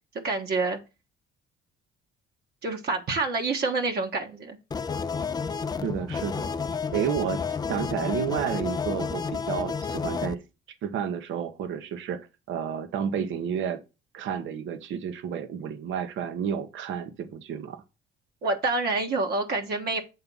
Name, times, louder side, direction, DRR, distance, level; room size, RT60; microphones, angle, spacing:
voice 1, 0.2-0.8 2.6-4.6 18.4-20.0, right 3 dB, 50° right, 1.3 m, -27 dB
sound 1, 4.7-10.4, left 5 dB, 20° left, 0.4 m, -31 dB
voice 2, 5.8-6.5 6.9-7.4 7.7-10.4 10.8-12.2 12.5-13.8 14.1-17.8, right 8 dB, 65° right, 1.1 m, -31 dB
7.7 x 3.6 x 5.4 m
cardioid pair, 130°, 21 cm